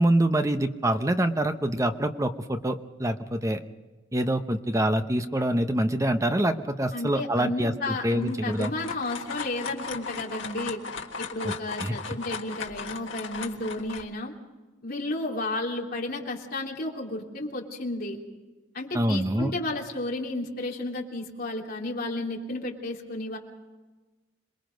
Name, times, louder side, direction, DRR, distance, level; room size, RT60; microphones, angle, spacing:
voice 1, 0.0-3.6 4.1-8.7 11.4-11.5 11.8-12.0 18.9-19.5, right 1 dB, 15° right, 7 dB, 0.9 m, -25 dB
voice 2, 6.9-10.8 11.2-14.3 14.8-18.2 18.7-23.4, left 2 dB, 50° left, -1 dB, 3.1 m, -32 dB
sound 1, 8.2-14.0, left 5 dB, 75° left, 1.7 m, -37 dB
27.0 x 21.0 x 5.3 m, 1.2 s
head